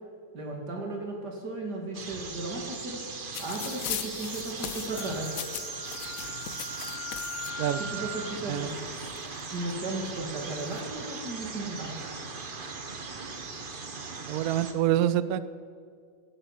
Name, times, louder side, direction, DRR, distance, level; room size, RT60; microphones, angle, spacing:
voice 1, 0.3-3.0 3.4-5.3 7.8-8.8 9.5-12.0, right 2 dB, 60° right, 1 dB, 2.9 m, -35 dB
sound 1, 1.9-14.7, right 4 dB, 35° right, 1.0 m, -39 dB
sound 2, 3.3-7.5 8.4-8.5 8.7-9.7 10.4-10.8, left 11 dB, 65° left, 0.9 m, -39 dB
Wind instrument woodwind instrument, 4.9-8.3, left 2 dB, 30° left, 3.5 m, -41 dB
voice 2, 14.3-15.4, right 12 dB, 75° right, 14 dB, 0.8 m, -26 dB
18.0 x 8.9 x 6.5 m, 2.2 s
omnidirectional pair, 2.0 m